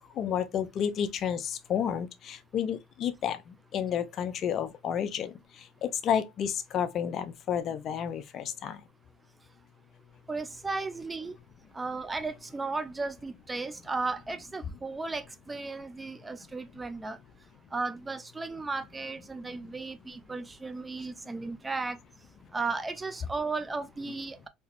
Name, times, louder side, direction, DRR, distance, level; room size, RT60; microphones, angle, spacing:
voice 1, 0.2-3.4 3.7-5.3 5.8-8.8, left 8 dB, 50° left, 0.5 m, -31 dB
voice 2, 10.3-11.4 11.7-17.2 17.7-22.0 22.5-24.5, right 3 dB, 15° right, 0.4 m, -35 dB
3.4 x 2.8 x 2.4 m
supercardioid pair, 95°, 0 cm